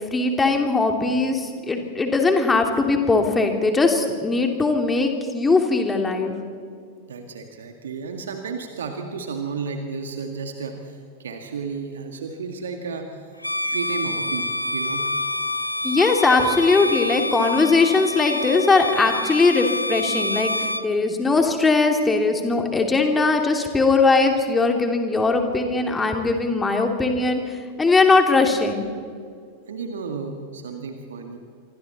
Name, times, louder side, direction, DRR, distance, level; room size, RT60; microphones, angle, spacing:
voice 1, 0.1-6.4 15.8-28.9, left 3 dB, 15° left, 4 dB, 2.7 m, -20 dB
voice 2, 7.1-13.3 13.7-15.0 29.7-31.4, right 5 dB, 65° right, 5 dB, 1.8 m, -32 dB
Bowed string instrument, 13.4-20.9, left 1 dB, 85° left, 0.7 m, -27 dB
27.5 x 24.5 x 4.2 m, 2.2 s
figure-of-eight pair, 90°, 0 cm